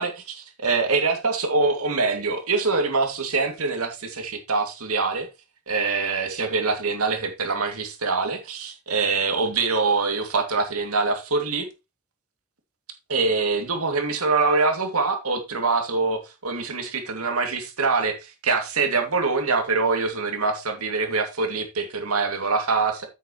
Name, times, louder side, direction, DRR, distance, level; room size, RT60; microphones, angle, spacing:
voice 1, 0.0-5.3 5.7-11.7 13.1-23.1, right 4 dB, 90° right, 2.5 m, -24 dB
9.2 x 8.3 x 3.1 m
head